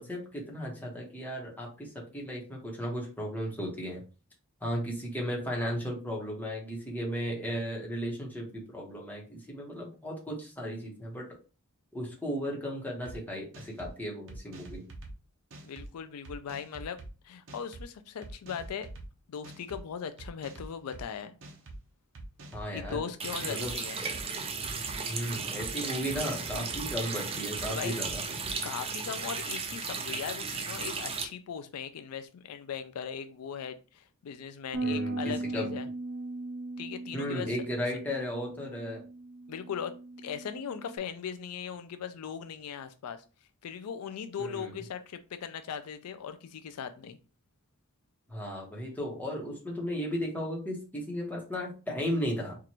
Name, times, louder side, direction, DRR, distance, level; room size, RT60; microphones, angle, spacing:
voice 1, 0.0-4.0 4.6-11.3 11.9-14.8 22.5-23.0 23.4-24.2 25.1-28.2 34.8-35.7 37.1-39.0 44.4-44.7 48.3-52.6, equal, 10° left, -3 dB, 1.1 m, -35 dB
sound 1, 13.1-13.2 13.5-13.9 14.3-15.1 15.5-15.9 16.3-17.1 17.5-17.8 18.2-19.1 19.4-19.8 20.2-21.0 21.4-21.8 22.2-23.0 23.4-23.7 24.1-25.0 25.3-25.7 26.1-26.9 27.3-27.7 28.1-28.6, right 2 dB, 60° right, 0.9 m, -45 dB
voice 2, 15.6-17.0 17.2-18.9 19.3-21.3 22.7-24.0 27.7-28.0 28.6-35.9 36.8-37.5 39.5-43.2 43.6-47.2, left 7 dB, 80° left, 10 dB, 0.4 m, -39 dB
Water tap faucet, 23.2-31.2, right 5 dB, 25° right, 0.5 m, -35 dB
Bass guitar, 34.7-41.0, right 2 dB, 90° right, 0.7 m, -38 dB
4.6 x 2.5 x 2.9 m, 0.34 s
head